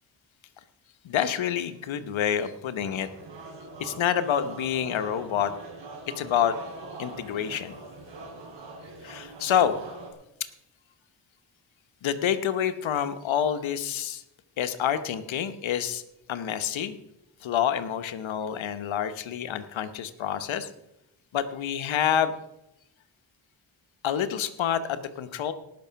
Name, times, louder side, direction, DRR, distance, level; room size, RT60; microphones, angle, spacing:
voice 1, 1.0-3.1 3.8-5.5 6.2-6.6 7.0-7.8 9.0-9.8 12.0-14.2 14.6-16.0 16.3-17.0 17.4-20.7 21.3-22.4 24.0-25.5, left 9 dB, 85° left, 11 dB, 1.1 m, -27 dB
sound 1, 2.8-10.1, right 2 dB, 75° right, 3.5 m, -43 dB
18.5 x 6.1 x 5.7 m, 0.85 s
cardioid pair, 65°, 46 cm